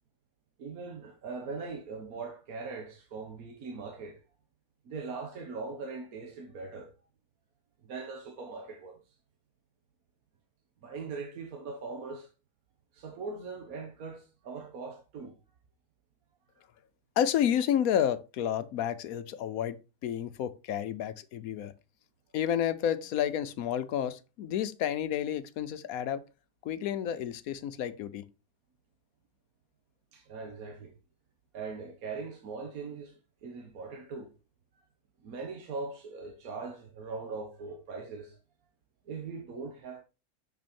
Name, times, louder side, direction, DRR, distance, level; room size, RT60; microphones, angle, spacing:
voice 1, 0.6-4.2 4.8-6.9 7.8-9.0 10.8-12.3 12.9-15.3 30.1-30.9 31.5-33.1 33.4-34.3 35.2-38.4 39.1-40.0, right 4 dB, 60° right, 1.4 m, -40 dB
voice 2, 17.2-19.8 20.0-21.7 22.3-26.2 26.6-28.2, left 9 dB, 65° left, 1.0 m, -30 dB
6.2 x 6.2 x 4.3 m
omnidirectional pair, 1.8 m